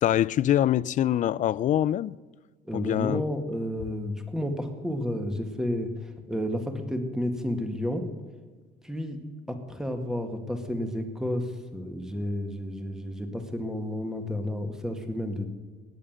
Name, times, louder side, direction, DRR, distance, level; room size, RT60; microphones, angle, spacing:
voice 1, 0.0-2.2 2.7-3.2, left 11 dB, 50° left, 0.4 m, -24 dB
voice 2, 2.6-8.1 8.8-9.2 9.5-15.5, left 1 dB, 5° right, 2.0 m, -31 dB
18.5 x 7.4 x 7.5 m
cardioid pair, 110°, 17 cm